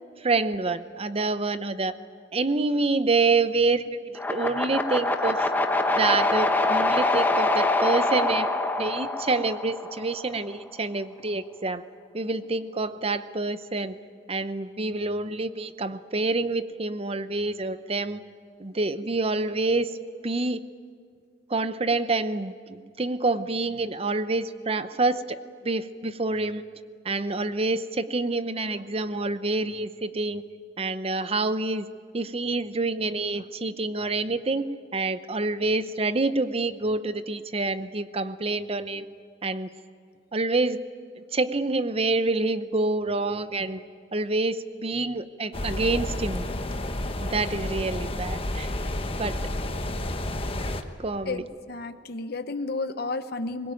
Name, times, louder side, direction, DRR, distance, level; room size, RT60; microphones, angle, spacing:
voice 1, 0.2-1.9 2.3-5.5 6.0-8.5 8.8-11.8 12.1-13.9 14.3-18.2 18.6-19.9 20.2-20.6 21.5-25.4 25.6-26.6 27.0-30.4 30.8-31.9 32.1-39.0 39.4-39.7 40.3-40.8 41.1-43.8 44.1-46.5 47.2-48.7 49.2-49.4 51.0-51.4, right 3 dB, 30° right, 13 dB, 0.7 m, -27 dB
sound 1, 4.2-10.3, left 2 dB, 10° left, 1.1 m, -25 dB
sound 2, 45.5-50.8, left 1 dB, 30° left, 1.2 m, -30 dB
voice 2, 51.2-53.7, left 3 dB, 55° left, 10 dB, 0.9 m, -32 dB
22.5 x 21.0 x 9.2 m, 2.1 s
head